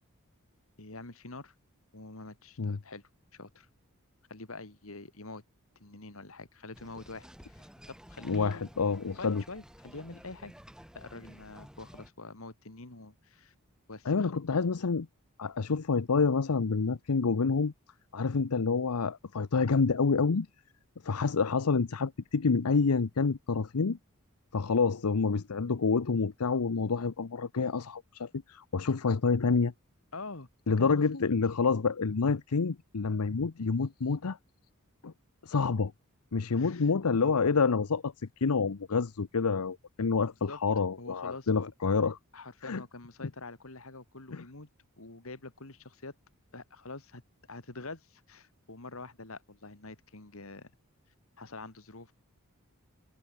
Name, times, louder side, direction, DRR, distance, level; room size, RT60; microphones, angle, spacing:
voice 1, 0.8-1.5 1.9-3.7 4.3-5.4 5.8-8.7 9.2-10.5 11.0-13.5 13.9-14.3 30.1-31.3 36.5-36.9 40.5-40.6 41.0-41.7 42.3-44.7 45.0-46.2 46.5-47.2 47.5-50.7 51.4-52.1, left 3 dB, 65° left, 2.2 m, -45 dB
sound 1, 6.7-12.1, equal, 5° right, 6.8 m, -52 dB
voice 2, 8.2-9.4 14.1-15.1 15.4-17.7 18.1-20.5 21.0-24.0 24.5-29.7 30.7-34.4 35.0-35.1 35.4-35.9 36.3-42.2 42.6-42.8 44.3-44.4, left 4 dB, 90° left, 0.7 m, -28 dB
head